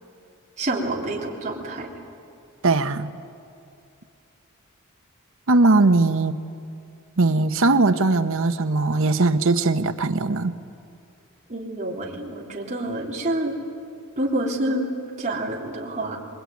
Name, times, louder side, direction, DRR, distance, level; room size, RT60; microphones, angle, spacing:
voice 1, 0.6-1.9 11.5-13.5 14.2-14.9 15.2-16.2, right 1 dB, 35° right, -3 dB, 3.8 m, -27 dB
voice 2, 2.6-3.1 5.5-6.3 7.2-10.5, right 3 dB, 65° right, 10 dB, 1.0 m, -19 dB
25.5 x 22.0 x 9.5 m, 2.5 s
head